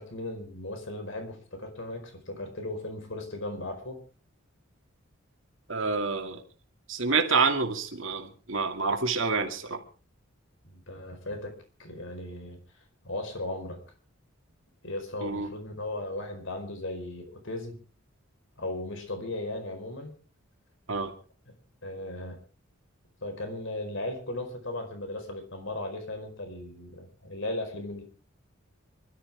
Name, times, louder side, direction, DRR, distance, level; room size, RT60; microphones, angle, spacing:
voice 1, 0.0-4.0 10.6-12.6 13.0-13.8 14.8-17.8 18.6-20.2 21.5-21.6 21.8-22.4 23.2-28.0, left 1 dB, 65° left, 5 dB, 4.7 m, -37 dB
voice 2, 5.7-6.4 6.9-9.8 15.2-15.5 20.9-21.1, right 4 dB, 70° right, 4 dB, 2.5 m, -27 dB
25.5 x 13.0 x 3.6 m, 0.37 s
head